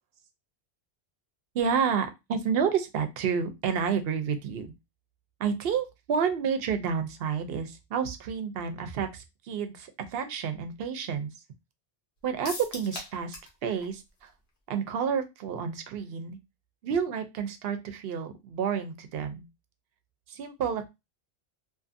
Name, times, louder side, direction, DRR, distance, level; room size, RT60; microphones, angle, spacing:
voice 1, 1.5-4.7 5.4-11.3 12.2-14.3 14.7-16.4 16.8-19.5 20.3-20.9, right 7 dB, 70° right, 7 dB, 0.8 m, -30 dB
sound 1, 12.4-13.6 13.8-13.9 14.3-14.4, left 2 dB, 75° left, 1.1 m, -39 dB
2.6 x 2.4 x 2.5 m, 0.22 s
omnidirectional pair, 1.0 m